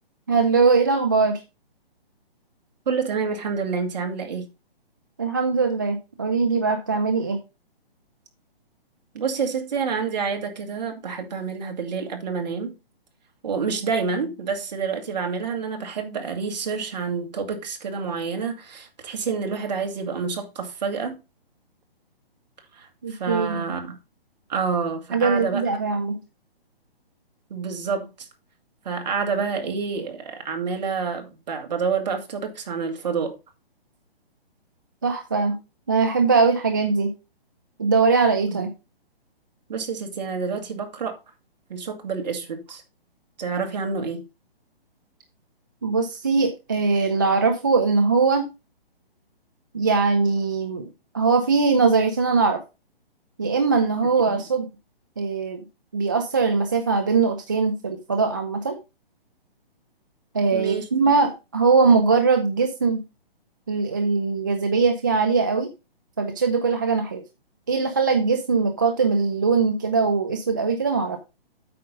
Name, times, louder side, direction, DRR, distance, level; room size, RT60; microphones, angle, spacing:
voice 1, 0.3-1.4 5.2-7.4 23.0-23.7 25.1-26.2 35.0-35.6 35.9-37.1 37.8-38.7 45.8-48.5 49.7-50.9 51.1-52.6 53.4-54.7 55.2-55.6 55.9-58.8 60.3-63.0 63.7-65.7 66.2-67.2 67.7-71.2, right 4 dB, 20° right, 0.4 m, -21 dB
voice 2, 2.9-4.5 9.1-12.7 13.4-21.2 22.7-24.0 24.5-25.8 27.5-28.3 28.8-33.4 38.5-38.7 39.7-41.2 41.7-42.8 43.4-44.2 54.3-54.4 60.5-60.9, right 5 dB, 45° right, 2.0 m, -28 dB
8.5 x 5.3 x 5.2 m
hypercardioid pair, 165°, 30 cm